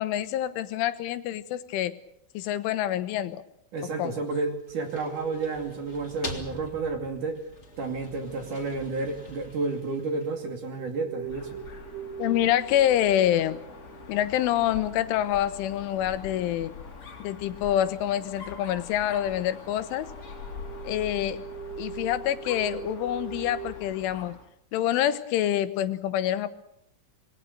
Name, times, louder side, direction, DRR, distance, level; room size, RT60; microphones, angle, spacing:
voice 1, 0.0-2.0 2.4-3.4 4.0-4.1 12.2-13.6 14.1-16.7 17.2-20.1 20.9-21.4 21.8-24.3 24.7-26.5, left 11 dB, 85° left, 12 dB, 3.6 m, -26 dB
voice 2, 3.7-7.5 7.8-11.6, right 3 dB, 50° right, 5 dB, 3.6 m, -31 dB
sound 1, 4.5-10.6, left 2 dB, 20° left, 2.1 m, -44 dB
sound 2, 4.9-7.3 10.2-15.8 16.6-16.7 17.0-17.2 17.8-17.9 18.1-18.3 18.6-23.7, right 8 dB, 80° right, 4.0 m, -43 dB
Dog, 11.2-24.5, left 5 dB, 35° left, 4.0 m, -44 dB
26.5 x 21.5 x 6.7 m, 0.75 s
omnidirectional pair, 5.5 m